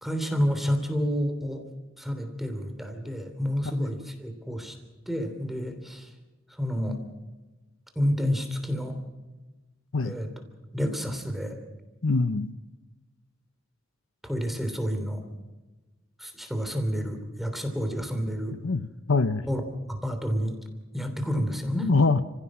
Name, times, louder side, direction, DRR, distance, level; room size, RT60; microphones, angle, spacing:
voice 1, 0.0-1.6 2.0-4.7 5.1-6.1 6.6-7.0 7.9-8.9 10.0-10.3 10.7-11.6 14.2-15.2 16.2-18.5 19.5-19.6 19.9-20.6 20.9-21.9, equal, ahead, 6 dB, 3.1 m, -29 dB
voice 2, 12.0-12.5 18.6-19.4 21.9-22.2, left 3 dB, 70° left, 11 dB, 0.8 m, -24 dB
30.0 x 16.0 x 6.2 m, 1.2 s
head